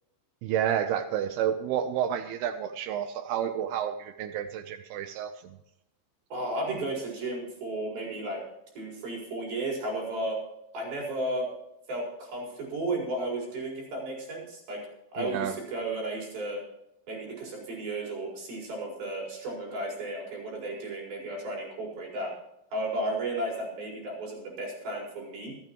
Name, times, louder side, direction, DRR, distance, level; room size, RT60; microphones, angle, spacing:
voice 1, 0.4-5.6 15.2-15.6, right 9 dB, 90° right, 9 dB, 2.2 m, -30 dB
voice 2, 6.3-8.4 8.8-10.4 10.7-11.5 11.9-14.8 15.1-16.6 17.1-22.3 22.7-25.5, right 1 dB, 55° right, -2 dB, 6.3 m, -33 dB
26.0 x 9.4 x 3.0 m, 0.83 s
omnidirectional pair, 5.4 m